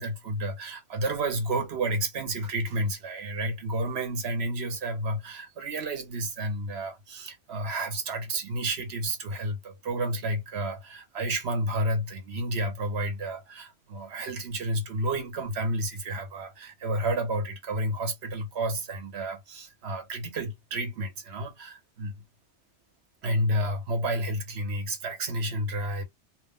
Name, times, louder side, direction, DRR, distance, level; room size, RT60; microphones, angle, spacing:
voice 1, 0.0-22.2 23.2-26.0, right 1 dB, 65° right, 1.1 m, -31 dB
2.5 x 2.1 x 3.6 m
omnidirectional pair, 1.2 m